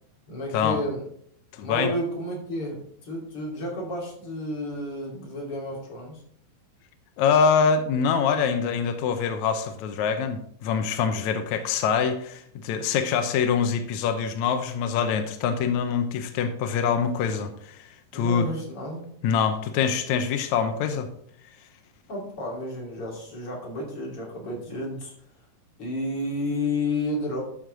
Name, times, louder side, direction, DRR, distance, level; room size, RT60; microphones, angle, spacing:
voice 1, 0.3-1.0 1.6-6.2 18.1-19.0 22.1-25.1 25.8-27.4, left 1 dB, 40° left, -3 dB, 3.6 m, -31 dB
voice 2, 1.5-1.9 7.2-17.8 18.1-18.5 19.2-21.1, left 6 dB, 75° left, 7 dB, 1.7 m, -24 dB
12.5 x 6.5 x 3.8 m, 0.65 s
omnidirectional pair, 4.2 m